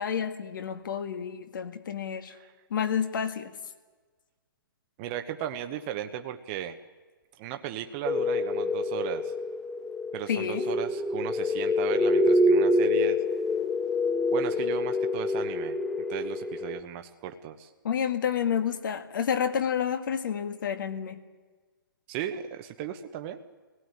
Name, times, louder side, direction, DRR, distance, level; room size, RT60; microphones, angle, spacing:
voice 1, 0.0-2.3 2.7-3.5 10.3-10.6 17.8-21.2, left 8 dB, 65° left, 9 dB, 1.9 m, -29 dB
voice 2, 5.0-6.8 7.4-9.3 10.1-13.2 14.3-15.8 16.1-17.7 22.1-23.4, right 10 dB, 30° right, 7 dB, 1.1 m, -36 dB
sound 1, 8.1-16.8, left 2 dB, 5° left, 0.6 m, -26 dB
22.5 x 17.5 x 9.7 m, 1.4 s
hypercardioid pair, 140°, 12 cm